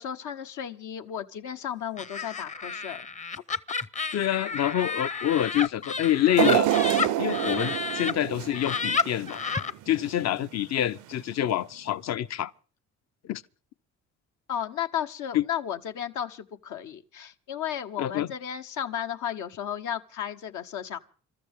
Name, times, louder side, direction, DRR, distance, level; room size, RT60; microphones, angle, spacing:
voice 1, 0.0-3.1 14.5-21.0, left 9 dB, 80° left, 1.1 m, -34 dB
Laughter, 2.0-8.1 8.5-9.7, left 5 dB, 25° left, 0.7 m, -31 dB
voice 2, 4.1-6.7 7.2-9.4 9.9-12.5 13.2-13.4 15.3-15.4 18.0-18.3, left 12 dB, 60° left, 0.7 m, -26 dB
sound 1, 6.4-9.5 10.0-10.1 11.1-11.2, right 12 dB, 80° right, 0.7 m, -26 dB
27.0 x 13.0 x 3.6 m
cardioid pair, 90°, 30 cm